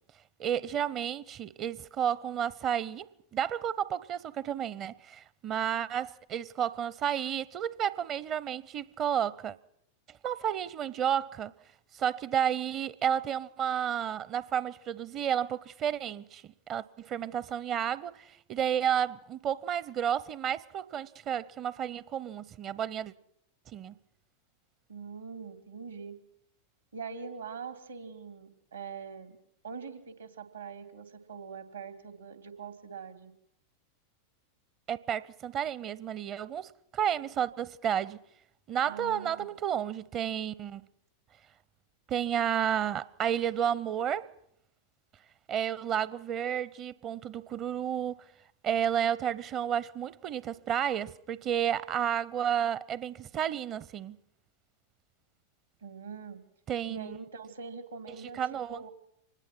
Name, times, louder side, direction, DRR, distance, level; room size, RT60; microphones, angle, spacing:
voice 1, 0.4-3.1 3.3-9.6 10.2-11.5 11.9-23.1 23.7-23.9 34.9-38.2 38.7-40.8 42.1-44.3 45.5-48.2 48.6-54.2 56.7-57.2 58.1-58.8, right 9 dB, 30° right, 0.7 m, -31 dB
voice 2, 24.9-26.2 26.9-29.4 29.6-33.3 38.8-39.5 55.8-56.4 56.9-58.9, right 5 dB, 75° right, 2.9 m, -43 dB
25.0 x 20.0 x 6.2 m
figure-of-eight pair, 90°, 0 cm